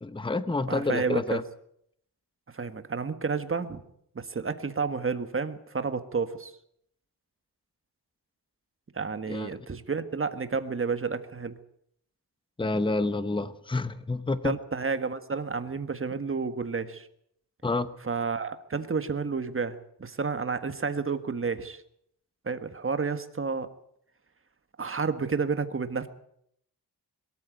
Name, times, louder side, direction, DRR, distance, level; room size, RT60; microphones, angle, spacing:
voice 1, 0.0-1.4 9.3-9.5 12.6-14.6 17.6-17.9, left 2 dB, 10° left, 13 dB, 0.9 m, -28 dB
voice 2, 0.7-1.4 2.5-3.8 4.1-6.5 8.9-11.6 14.4-17.1 18.0-21.8 22.4-23.7 24.8-26.1, right 5 dB, 30° right, 10 dB, 1.6 m, -30 dB
22.0 x 13.5 x 9.1 m, 0.71 s
wide cardioid pair, 135°, 40 cm